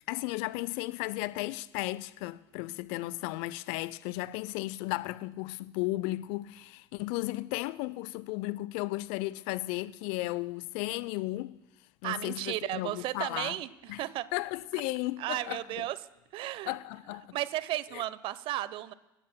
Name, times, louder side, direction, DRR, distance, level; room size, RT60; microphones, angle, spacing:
voice 1, 0.1-11.6 12.0-13.6 13.9-14.0 14.3-15.8 16.7-17.4 17.9-18.0, left 19 dB, 60° left, 0.6 m, -35 dB
voice 2, 12.0-14.3 15.2-16.0 16.3-16.8 17.3-18.9, right 14 dB, 50° right, 0.8 m, -34 dB
25.0 x 16.5 x 2.2 m
hypercardioid pair, 70°, 11 cm